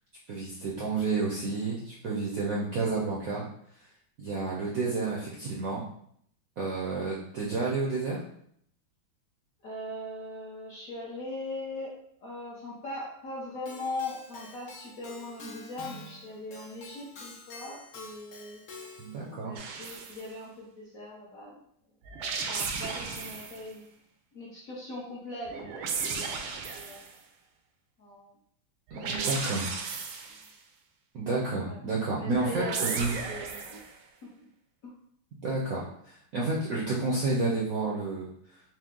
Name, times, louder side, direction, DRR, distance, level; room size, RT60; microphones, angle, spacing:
voice 1, 0.3-3.4 4.2-5.8 6.6-8.2 19.0-19.6 28.9-29.7 31.1-33.1 35.4-38.3, right 3 dB, 65° right, -5 dB, 0.8 m, -30 dB
voice 2, 9.6-18.9 19.3-21.6 22.1-23.9 24.3-26.5 26.7-27.0 28.0-28.3 29.0-29.7 31.6-31.8 32.2-33.8 34.2-34.5 34.8-34.9, left 2 dB, 60° left, -5 dB, 0.9 m, -40 dB
Keyboard (musical), 13.7-19.3, left 2 dB, 85° left, 0.7 m, -47 dB
sound 1, 19.6-20.2 22.0-23.6 25.5-27.1 28.9-30.5 32.3-33.9, right 5 dB, 85° right, 1.4 m, -35 dB
4.4 x 2.1 x 3.6 m, 0.67 s
omnidirectional pair, 2.2 m